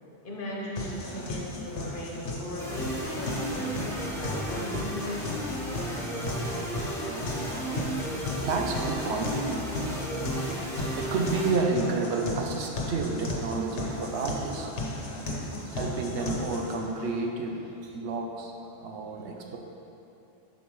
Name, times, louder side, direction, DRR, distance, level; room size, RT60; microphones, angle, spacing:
voice 1, 0.2-5.4, left 1 dB, 50° left, -4 dB, 1.2 m, -38 dB
sound 1, 0.8-16.8, left 2 dB, 90° left, 1.2 m, -35 dB
sound 2, 2.6-12.2, right 1 dB, 5° left, 0.9 m, -34 dB
voice 2, 7.0-19.6, right 3 dB, 80° right, 2 dB, 1.0 m, -32 dB
7.2 x 6.2 x 3.1 m, 2.9 s
omnidirectional pair, 1.1 m